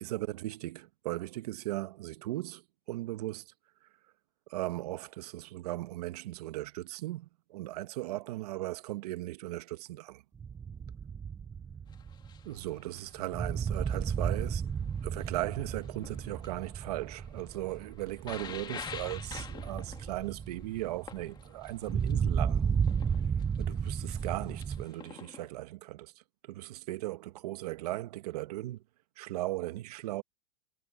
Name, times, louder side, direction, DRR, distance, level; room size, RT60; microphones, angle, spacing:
voice 1, 0.0-2.6 2.9-3.4 4.5-10.2 12.4-14.6 15.0-22.8 23.6-26.1 26.4-28.8 29.2-30.2, right 17 dB, 70° right, 1.4 m, -37 dB
sound 1, 10.4-24.8, right 7 dB, 15° right, 0.6 m, -34 dB
sound 2, 11.9-25.5, left 7 dB, 20° left, 2.2 m, -49 dB
supercardioid pair, 135°, 21 cm